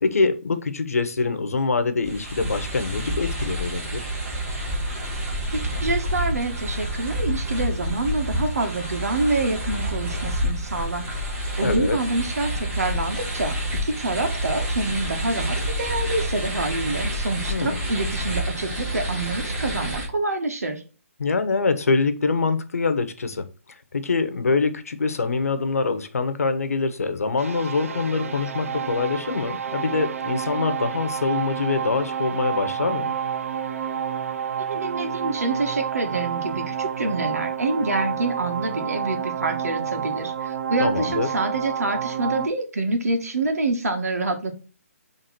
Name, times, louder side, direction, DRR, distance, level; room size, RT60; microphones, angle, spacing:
voice 1, 0.0-4.1 11.6-12.0 17.5-17.8 21.2-23.4 23.9-33.1 40.8-41.3, left 4 dB, 75° left, 1.1 m, -24 dB
sound 1, 2.0-20.1, right 1 dB, 20° right, 2.6 m, -28 dB
voice 2, 5.5-11.0 11.6-13.5 13.8-20.8 34.6-44.5, right 2 dB, 80° right, 1.9 m, -27 dB
sound 2, 27.4-42.5, right 8 dB, 65° right, 0.8 m, -29 dB
6.7 x 3.6 x 4.3 m
hypercardioid pair, 165°, 8 cm